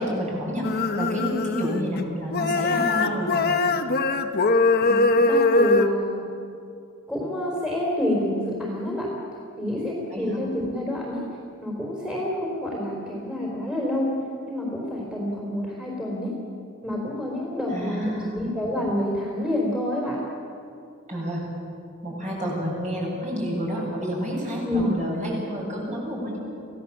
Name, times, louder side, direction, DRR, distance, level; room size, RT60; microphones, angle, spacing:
voice 1, 0.0-3.4 10.1-10.4 17.7-18.4 21.1-21.4 22.0-26.4, equal, 35° right, -3 dB, 7.7 m, -29 dB
sound 1, 0.6-2.0 2.3-5.9, left 3 dB, 50° left, 1.1 m, -22 dB
voice 2, 4.8-6.2 7.1-9.1 9.6-11.2 11.6-14.1 14.5-16.3 16.8-20.2 24.6-24.9, left 1 dB, 5° right, -3 dB, 4.1 m, -28 dB
27.5 x 16.5 x 7.3 m, 2.6 s
head